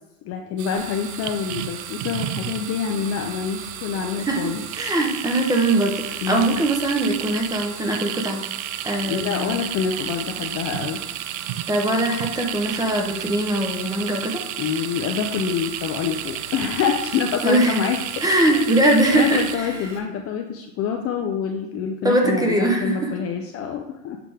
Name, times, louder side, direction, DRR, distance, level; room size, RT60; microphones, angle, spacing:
voice 1, 0.2-4.6 6.2-6.6 9.0-11.0 14.6-18.0 18.4-24.2, left 7 dB, 30° left, 3 dB, 0.4 m, -26 dB
sound 1, 0.6-19.6, right 13 dB, 60° right, 0.5 m, -32 dB
sound 2, 0.7-20.0, right 2 dB, 75° right, 1.4 m, -42 dB
voice 2, 4.8-8.4 8.8-9.6 11.7-14.4 17.4-17.8 18.2-19.6 22.0-23.1, right 1 dB, 10° right, 2 dB, 0.7 m, -21 dB
7.6 x 4.9 x 3.4 m, 0.95 s
supercardioid pair, 135°, 46 cm